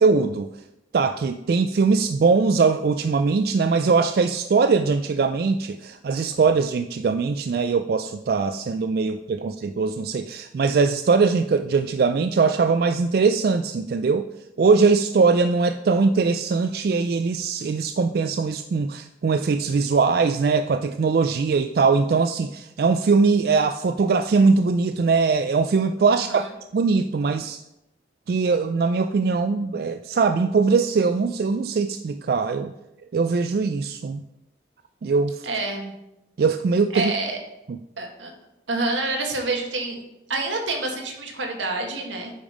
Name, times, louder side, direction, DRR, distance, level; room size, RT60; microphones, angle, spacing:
voice 1, 0.0-0.5 0.9-14.3 14.6-26.4 26.7-27.6 28.3-32.7 33.1-34.2 35.0-35.5 36.4-37.1 37.7-37.8, right 4 dB, 55° right, 9 dB, 0.3 m, -21 dB
voice 2, 26.1-26.5 35.4-35.9 36.9-37.4 38.0-38.3 38.7-42.3, right 2 dB, 85° right, 2 dB, 1.6 m, -28 dB
8.7 x 5.2 x 5.1 m, 0.89 s
head